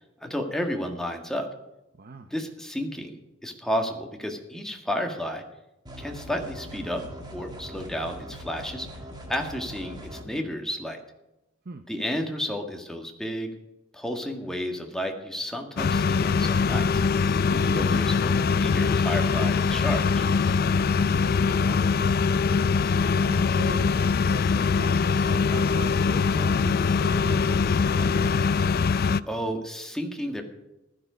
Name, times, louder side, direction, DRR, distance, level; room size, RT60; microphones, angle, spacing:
voice 1, 0.2-1.5 2.3-3.2 3.4-5.4 6.0-7.0 7.3-8.9 9.3-11.0 11.9-13.5 13.9-16.9 17.5-20.3 29.3-30.4, equal, 5° left, 2 dB, 1.7 m, -31 dB
voice 2, 1.9-2.3 11.6-11.9 20.8-22.5 23.1-28.7, right 3 dB, 50° right, 8 dB, 0.7 m, -41 dB
sound 1, 5.9-10.2, equal, 20° right, 2.1 m, -41 dB
sound 2, 15.8-29.2, left 5 dB, 50° left, 0.4 m, -23 dB
15.5 x 12.0 x 5.1 m, 0.93 s
head